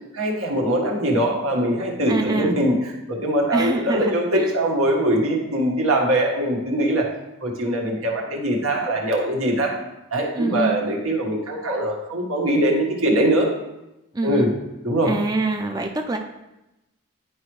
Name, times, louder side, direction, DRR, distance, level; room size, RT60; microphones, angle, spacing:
voice 1, 0.1-7.1 7.4-9.7 10.1-13.5 14.2-14.5 14.8-15.1, right 1 dB, 85° right, 0 dB, 1.6 m, -22 dB
voice 2, 2.1-2.6 3.5-4.5 10.3-10.8 14.1-14.5 15.0-16.2, right 2 dB, 20° right, 3 dB, 0.4 m, -25 dB
10.0 x 5.0 x 3.2 m, 0.94 s
head